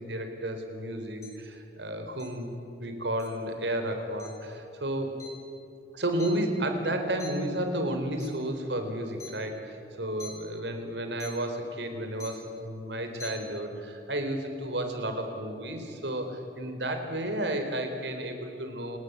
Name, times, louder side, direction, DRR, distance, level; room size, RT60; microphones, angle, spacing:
voice 1, 0.0-2.5 2.8-5.2 5.9-19.0, right 1 dB, 80° right, 6 dB, 4.2 m, -32 dB
sound 1, 1.2-1.3 2.2-2.3 3.2-3.3 4.2-4.3 5.2-5.3 5.7-6.8 7.2-7.5 8.1-8.4 9.2-9.3 10.0-10.3 11.2-11.3 12.1-12.5 13.0-13.3, left 4 dB, 20° left, 5.9 m, -44 dB
29.0 x 20.0 x 8.2 m, 2.7 s
head